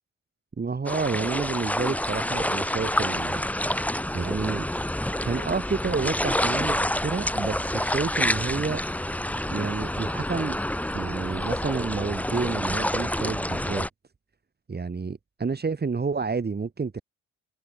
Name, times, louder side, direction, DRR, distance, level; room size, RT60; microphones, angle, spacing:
voice 1, 0.6-3.4 4.1-4.7 5.2-8.8 9.5-10.6 10.9-13.9 14.7-17.0, right 4 dB, 35° right, 7.2 m, -29 dB
sound 1, 0.9-13.9, left 1 dB, 5° left, 3.9 m, -28 dB
cardioid pair, 90°, 30 cm